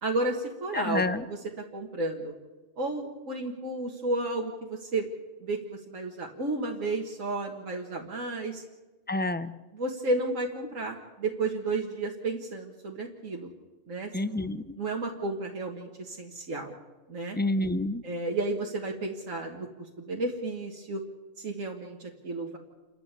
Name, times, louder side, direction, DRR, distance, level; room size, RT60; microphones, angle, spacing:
voice 1, 0.0-1.4 1.7-2.3 2.8-5.1 5.4-8.6 9.7-13.5 13.9-14.5 14.8-16.8 17.1-17.4 18.0-19.7 20.0-21.0 21.4-22.6, right 2 dB, 90° right, 0 dB, 2.1 m, -32 dB
voice 2, 0.7-1.2 9.1-9.5 14.1-14.6 17.4-18.0, left 2 dB, 10° left, 13 dB, 0.5 m, -28 dB
29.0 x 12.5 x 8.3 m, 1.2 s
omnidirectional pair, 1.3 m